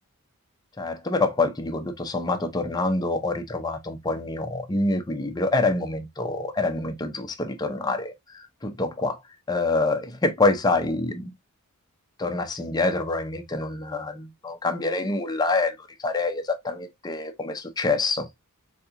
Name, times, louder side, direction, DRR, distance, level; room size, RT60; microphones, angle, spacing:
voice 1, 0.8-9.2 9.5-11.3 12.2-18.3, left 3 dB, 20° left, 0.5 m, -26 dB
4.0 x 2.8 x 2.5 m
head